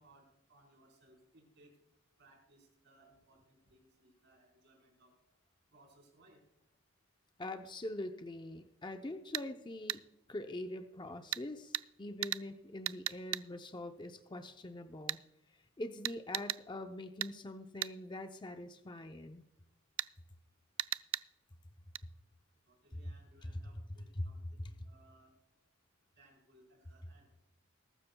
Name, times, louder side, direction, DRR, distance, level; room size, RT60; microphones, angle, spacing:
voice 1, 0.0-1.8 2.2-5.1 5.7-6.4 22.7-25.3 26.2-27.3, right 1 dB, 55° right, 0 dB, 4.3 m, -65 dB
voice 2, 7.4-10.0 10.3-15.2 15.8-19.5 23.4-23.5 24.1-24.3 24.6-24.7, left 1 dB, 20° left, 6 dB, 0.6 m, -43 dB
sound 1, 9.3-9.5 9.9-10.0 11.3-11.5 11.7-11.9 12.2-12.5 12.9-13.5 15.1-15.2 16.0-16.6 17.2-17.3 17.8-17.9 20.0-20.1 20.8-21.3 22.0-22.1, right 15 dB, 75° right, 0.4 m, -36 dB
21.5 x 12.5 x 2.3 m, 0.89 s
head